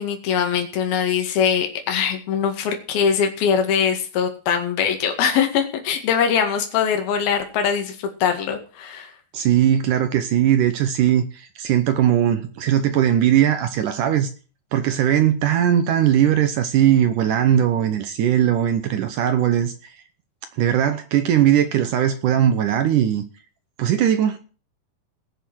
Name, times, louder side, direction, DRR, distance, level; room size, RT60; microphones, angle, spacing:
voice 1, 0.0-9.1, left 7 dB, 65° left, 3.7 m, -22 dB
voice 2, 9.3-14.3 14.7-19.9 20.5-23.2 23.8-24.4, right 10 dB, 75° right, 1.9 m, -19 dB
18.5 x 6.8 x 6.2 m
omnidirectional pair, 4.8 m